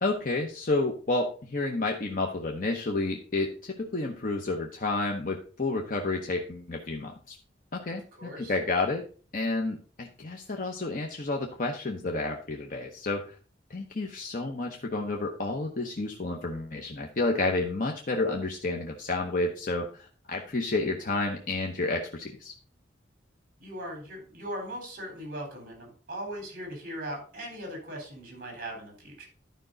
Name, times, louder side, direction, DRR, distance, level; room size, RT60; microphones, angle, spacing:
voice 1, 0.0-7.4 7.7-8.0 8.4-9.1 9.3-13.4 13.7-22.5, left 2 dB, 50° left, 2 dB, 0.9 m, -30 dB
voice 2, 8.1-8.6 23.6-29.3, equal, 50° right, 2 dB, 4.0 m, -39 dB
11.5 x 5.3 x 3.9 m, 0.38 s
head